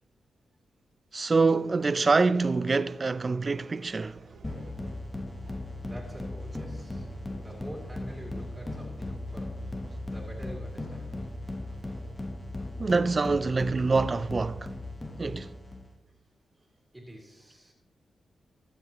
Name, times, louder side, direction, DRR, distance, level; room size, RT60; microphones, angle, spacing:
voice 1, 1.1-4.2 12.8-14.7 15.2-15.5, right 4 dB, 35° right, 0.4 m, -25 dB
sound 1, 1.5-12.2, right 3 dB, 90° right, 3.8 m, -55 dB
sound 2, 4.4-15.9, left 2 dB, 20° left, 1.1 m, -37 dB
voice 2, 5.8-7.1 7.4-9.8 10.1-11.2 16.6-17.7, equal, 15° right, 2.5 m, -46 dB
20.5 x 7.4 x 3.0 m
cardioid pair, 100°, 0 cm